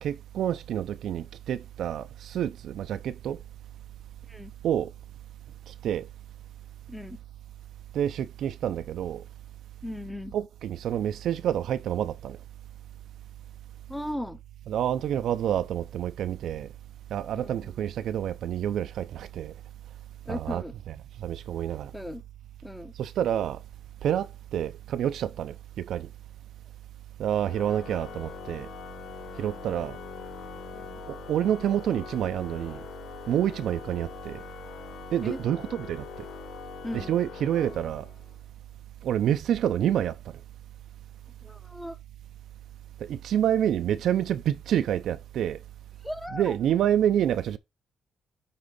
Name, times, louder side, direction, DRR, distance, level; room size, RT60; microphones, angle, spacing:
voice 1, 0.0-3.4 4.6-4.9 5.7-6.1 7.9-9.2 10.3-12.4 14.7-16.7 17.1-19.5 20.3-20.6 21.2-21.9 23.0-23.6 24.0-26.1 27.2-28.7 29.4-30.0 31.1-32.8 33.3-34.4 35.1-36.1 37.1-38.1 39.0-40.4 43.0-45.6 46.3-47.6, right 10 dB, 75° right, 0.6 m, -28 dB
voice 2, 6.9-7.2 9.8-10.3 13.9-14.4 17.3-17.8 20.2-20.7 21.9-22.2 22.6-22.9 30.7-31.0 35.2-35.4 36.8-37.2 41.4-42.0 46.0-46.6, left 1 dB, 5° left, 0.9 m, -37 dB
Organ, 27.4-38.4, left 8 dB, 70° left, 0.5 m, -43 dB
9.8 x 3.7 x 3.8 m
cardioid pair, 90°, 0 cm